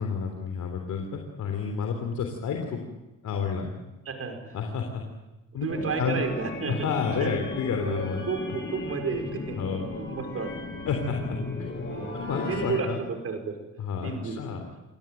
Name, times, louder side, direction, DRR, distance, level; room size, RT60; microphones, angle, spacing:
voice 1, 0.0-2.8 3.2-3.7 4.5-5.0 5.5-5.7 6.0-6.2 6.7-8.2 9.6-9.9 10.9-11.4 12.1-13.0 13.8-14.6, left 5 dB, 70° left, 3 dB, 3.5 m, -30 dB
voice 2, 4.1-4.6 5.5-6.9 7.2-7.3 7.8-9.6 10.0-10.8 11.8-12.1 12.5-13.6 14.0-14.4, right 5 dB, 50° right, 5 dB, 5.6 m, -32 dB
sound 1, 5.7-12.8, left 3 dB, 40° left, 7.6 m, -36 dB
25.5 x 18.0 x 9.2 m, 1.1 s
cardioid pair, 90°, 30 cm